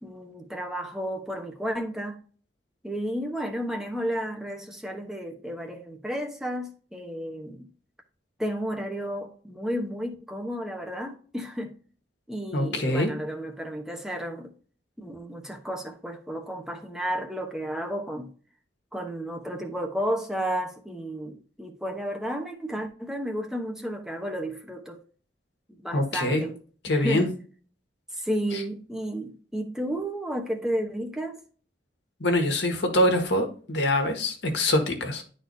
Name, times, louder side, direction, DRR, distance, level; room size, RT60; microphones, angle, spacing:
voice 1, 0.0-2.2 2.8-7.7 8.4-11.7 12.3-14.5 15.0-18.3 18.9-25.0 25.7-26.6 26.9-27.3 28.1-31.4, equal, 5° right, 0.9 m, -32 dB
voice 2, 12.5-13.1 25.9-26.4 26.8-27.3 28.5-28.6 32.2-35.2, left 1 dB, 75° left, 1.6 m, -24 dB
11.0 x 4.2 x 2.7 m
head